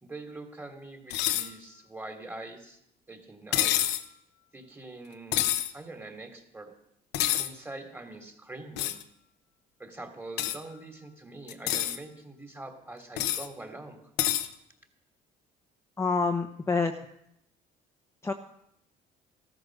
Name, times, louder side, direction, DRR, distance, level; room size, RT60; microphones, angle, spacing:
voice 1, 0.0-2.8 3.1-4.0 4.5-5.5 5.7-6.7 7.3-8.9 9.8-14.0, right 2 dB, 15° right, 5 dB, 3.1 m, -44 dB
sound 1, 1.1-1.5 3.5-4.1 5.3-5.7 7.1-7.5 8.8-9.0 10.4-10.6 11.5-12.0 13.2-13.5 14.2-14.5, left 12 dB, 85° left, 1.1 m, -27 dB
voice 2, 16.0-16.9 18.2-18.3, left 4 dB, 15° left, 3 dB, 1.0 m, -27 dB
15.5 x 13.0 x 6.5 m, 0.76 s
cardioid pair, 110°, 17 cm